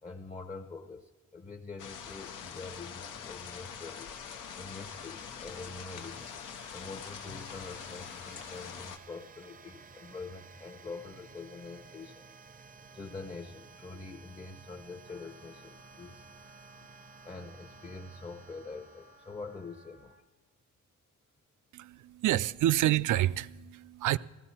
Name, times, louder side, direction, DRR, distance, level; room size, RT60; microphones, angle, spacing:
voice 1, 0.0-4.1 4.5-6.4 6.7-12.3 12.9-16.3 16.8-16.9 17.2-20.1, left 3 dB, 20° left, 0.8 m, -45 dB
sound 1, 1.8-9.0, left 7 dB, 85° left, 1.0 m, -44 dB
sound 2, 2.4-19.9, right 5 dB, 25° right, 0.6 m, -55 dB
Wind instrument woodwind instrument, 15.0-20.2, left 1 dB, 40° left, 1.2 m, -60 dB
voice 2, 21.7-24.2, right 14 dB, 70° right, 0.4 m, -28 dB
15.0 x 15.0 x 4.3 m
cardioid pair, 125°, 31 cm